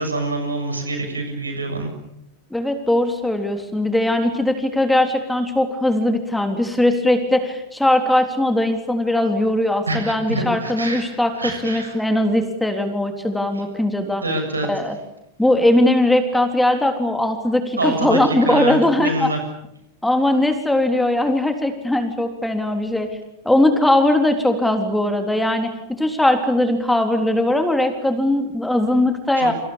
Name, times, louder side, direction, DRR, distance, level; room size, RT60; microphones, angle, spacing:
voice 1, 0.0-1.9 9.9-12.0 14.2-14.7 17.8-19.4 29.3-29.5, right 2 dB, 75° right, 5 dB, 7.3 m, -26 dB
voice 2, 2.5-14.2 14.7-15.0 15.4-19.3 20.0-23.1 23.5-25.7 26.0-29.5, left 1 dB, 5° left, 6 dB, 3.7 m, -19 dB
29.5 x 26.0 x 7.2 m, 0.79 s
figure-of-eight pair, 90°, 0 cm